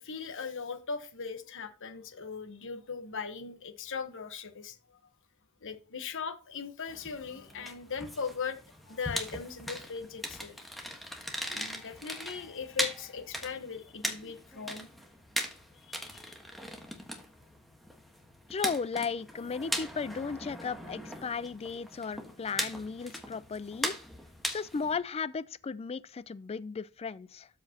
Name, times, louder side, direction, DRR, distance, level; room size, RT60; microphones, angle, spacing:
voice 1, 0.0-4.8 5.6-8.6 8.9-10.8 11.5-14.9 15.8-16.3, left 5 dB, 60° left, 1.1 m, -39 dB
sound 1, 6.9-25.0, equal, ahead, 1.4 m, -39 dB
voice 2, 18.5-24.0 24.5-27.5, left 5 dB, 30° left, 0.3 m, -35 dB
13.0 x 5.0 x 2.9 m
head